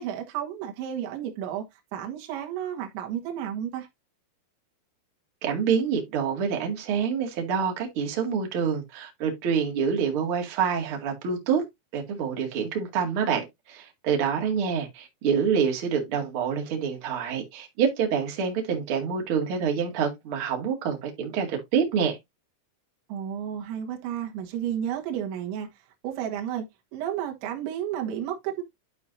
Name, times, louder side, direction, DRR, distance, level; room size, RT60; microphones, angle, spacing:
voice 1, 0.0-1.7 1.9-3.9 23.1-25.7 26.0-26.7 26.9-28.6, right 10 dB, 70° right, 3.7 m, -32 dB
voice 2, 5.4-11.6 11.9-22.2, right 7 dB, 45° right, 1.7 m, -27 dB
12.0 x 4.7 x 2.6 m
omnidirectional pair, 5.7 m